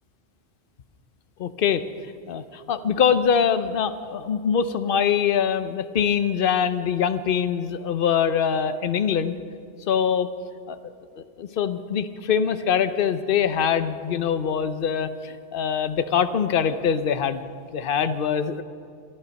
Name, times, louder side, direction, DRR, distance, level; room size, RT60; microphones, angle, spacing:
voice 1, 1.4-1.8 2.3-9.4 9.9-10.3 10.7-10.8 11.4-18.6, left 7 dB, 55° left, 11 dB, 0.9 m, -23 dB
22.5 x 12.0 x 5.3 m, 2.4 s
omnidirectional pair, 1.2 m